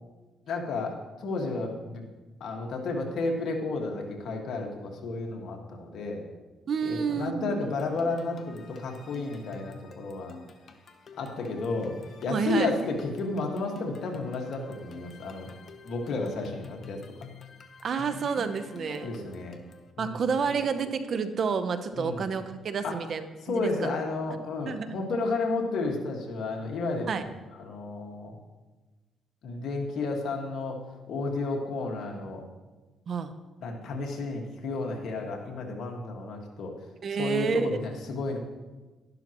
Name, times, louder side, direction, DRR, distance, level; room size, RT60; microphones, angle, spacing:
voice 1, 0.5-2.0 2.4-6.2 6.8-10.4 11.2-11.9 12.2-15.5 15.8-17.0 18.9-19.6 20.0-20.2 20.5-20.6 21.9-22.3 22.8-23.0 23.5-27.2 27.6-28.4 29.4-30.8 31.1-32.4 33.6-36.7 37.1-38.4, left 3 dB, 70° left, 1 dB, 1.8 m, -32 dB
voice 2, 6.7-7.6 12.3-12.7 17.8-19.3 20.0-23.9 24.7-25.0 27.1-27.2 33.1-33.3 37.0-37.8, right 5 dB, 55° right, 10 dB, 0.8 m, -29 dB
sound 1, 7.6-19.9, left 5 dB, 50° left, 1.0 m, -48 dB
12.0 x 11.5 x 3.0 m, 1.2 s
cardioid pair, 90°, 0 cm